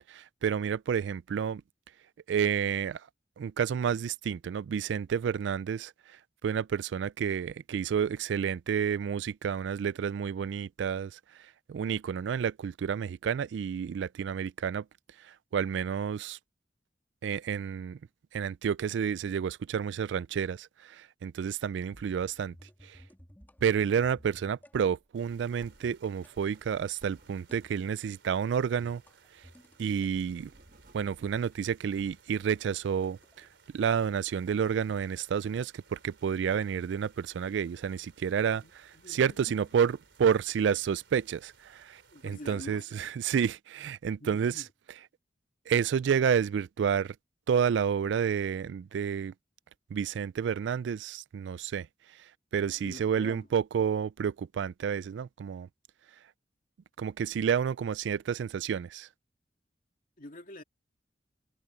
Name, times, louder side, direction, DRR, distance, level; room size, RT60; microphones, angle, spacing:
voice 1, 0.1-1.6 2.3-3.1 3.4-11.2 11.7-14.8 15.2-16.4 17.2-18.0 18.3-22.5 22.8-23.0 23.6-29.0 29.8-30.5 30.9-33.5 33.7-44.5 45.7-47.1 47.5-49.3 49.9-51.9 52.5-55.7 57.0-59.1, right 7 dB, 75° right, 0.3 m, -30 dB
sound 1, 21.9-24.8 25.8-26.4 27.5-27.9 28.7-30.1 31.5-33.5 33.8-33.9, equal, 10° left, 2.0 m, -56 dB
sound 2, 25.0-28.7 29.0-29.1 29.4-29.5 29.8-32.3, right 1 dB, 50° right, 1.4 m, -58 dB
sound 3, 25.1-42.5, right 5 dB, 90° right, 3.4 m, -62 dB
voice 2, 38.5-39.6 42.1-43.1 44.2-44.7 52.7-53.5 60.2-60.6, left 1 dB, 50° left, 2.5 m, -47 dB
head